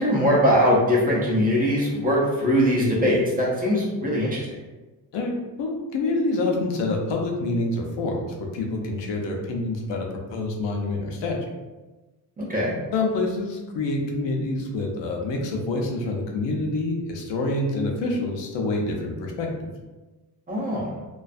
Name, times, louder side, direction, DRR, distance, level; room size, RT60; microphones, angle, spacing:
voice 1, 0.0-4.5 12.4-12.7 20.5-20.9, equal, 20° right, -5 dB, 0.4 m, -21 dB
voice 2, 5.1-11.4 12.9-19.7, left 2 dB, 90° left, 1 dB, 0.6 m, -27 dB
2.4 x 2.3 x 2.4 m, 1.2 s
wide cardioid pair, 175°, 42 cm